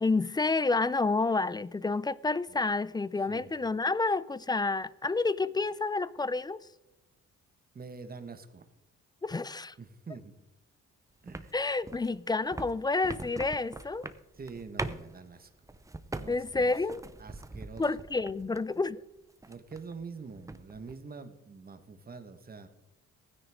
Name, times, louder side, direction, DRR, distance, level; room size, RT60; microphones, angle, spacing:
voice 1, 0.0-6.6 9.2-9.7 11.5-14.1 16.3-17.0 17.8-19.0, left 3 dB, 15° left, 0.3 m, -29 dB
voice 2, 7.7-8.7 9.8-10.4 11.2-11.5 11.8-11.9 14.3-15.5 16.0-16.8 17.2-17.9 19.5-22.7, right 4 dB, 30° right, 1.3 m, -45 dB
walk wood jump clunk boot, 11.3-18.8 19.2-20.0 20.3-21.0, right 2 dB, 10° right, 0.7 m, -42 dB
16.0 x 9.7 x 3.6 m
cardioid pair, 90°, 30 cm